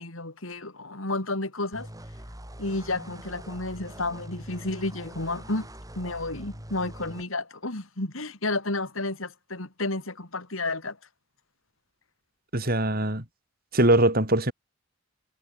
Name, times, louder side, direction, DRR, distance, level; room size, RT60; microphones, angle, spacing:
voice 1, 0.0-1.9 2.6-5.7 6.0-11.0, left 2 dB, 75° left, 4.0 m, -31 dB
sound 1, 1.7-7.2, right 1 dB, 15° right, 6.5 m, -43 dB
voice 2, 12.5-13.2 13.7-14.5, right 1 dB, 45° right, 5.4 m, -22 dB
head